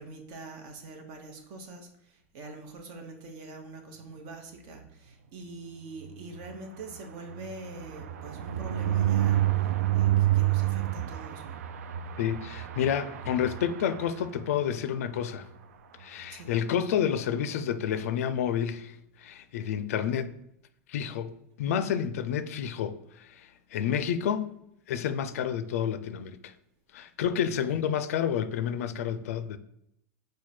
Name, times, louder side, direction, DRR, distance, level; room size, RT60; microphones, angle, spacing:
voice 1, 0.0-11.6 16.3-16.5, right 2 dB, 50° right, 0.9 m, -44 dB
sound 1, 6.0-14.8 15.2-15.4 15.6-15.7 16.0-16.3, right 13 dB, 85° right, 0.4 m, -29 dB
voice 2, 12.2-15.5 16.0-20.3 20.9-23.4 23.7-24.5 24.9-26.5 26.9-29.6, left 8 dB, 80° left, 0.4 m, -29 dB
4.6 x 2.2 x 4.2 m
hypercardioid pair, 120°, 8 cm